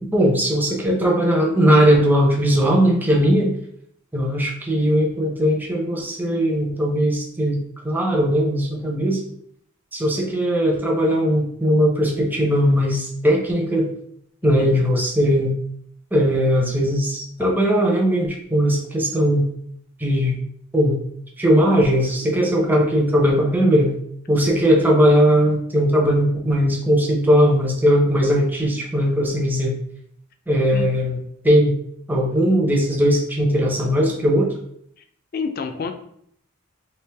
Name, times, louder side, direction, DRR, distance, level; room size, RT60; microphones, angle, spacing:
voice 1, 0.1-3.6 4.1-7.6 7.8-9.2 9.9-13.9 14.4-15.5 16.1-19.5 20.0-20.3 20.7-21.0 21.4-23.9 24.3-29.7 30.5-31.2 31.4-31.7 32.1-34.5, equal, 10° right, -1 dB, 0.6 m, -19 dB
voice 2, 35.3-35.9, left 5 dB, 45° left, 6 dB, 0.4 m, -28 dB
3.2 x 2.8 x 3.3 m, 0.67 s
head